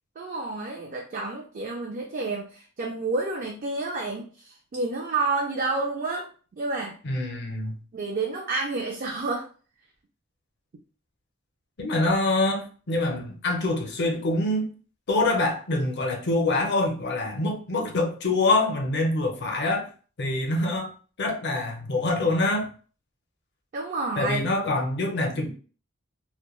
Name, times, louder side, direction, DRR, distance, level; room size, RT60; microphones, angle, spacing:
voice 1, 0.2-6.3 6.6-7.0 7.9-9.5 23.7-24.4, right 3 dB, 40° right, 0.4 m, -29 dB
voice 2, 7.0-7.8 11.8-14.7 15.1-19.9 20.2-20.9 21.2-22.7 24.2-25.5, left 2 dB, 55° left, 0.6 m, -25 dB
2.2 x 2.1 x 3.0 m
head